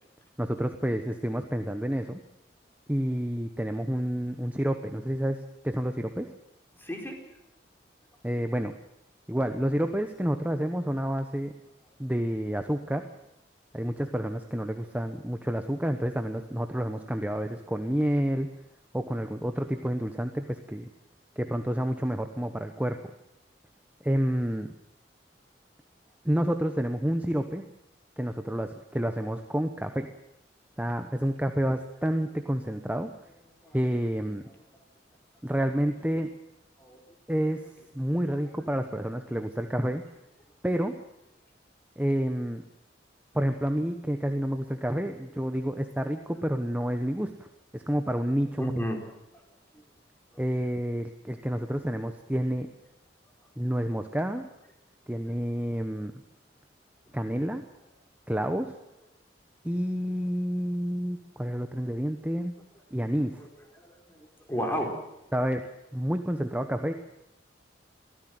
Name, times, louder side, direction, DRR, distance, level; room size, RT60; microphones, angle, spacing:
voice 1, 0.4-2.2 2.9-6.3 8.2-8.7 9.3-11.5 12.0-13.1 13.7-18.5 18.9-20.9 21.4-23.0 24.0-24.7 26.2-27.6 28.2-30.1 30.8-33.1 33.7-34.4 35.4-36.3 37.3-37.6 37.9-40.0 40.6-40.9 42.0-42.6 43.3-47.5 47.7-48.7 50.4-52.7 53.6-54.4 55.1-56.1 57.1-57.6 58.3-58.7 59.6-62.5 62.9-63.4 65.3-65.7 65.9-66.9, equal, 10° right, 6 dB, 1.1 m, -29 dB
voice 2, 6.7-7.2 33.6-33.8 36.8-37.0 48.6-49.0 49.7-49.8 50.3-50.4 63.8-64.9, equal, 10° left, 2 dB, 4.4 m, -33 dB
23.5 x 15.0 x 7.8 m, 0.89 s
head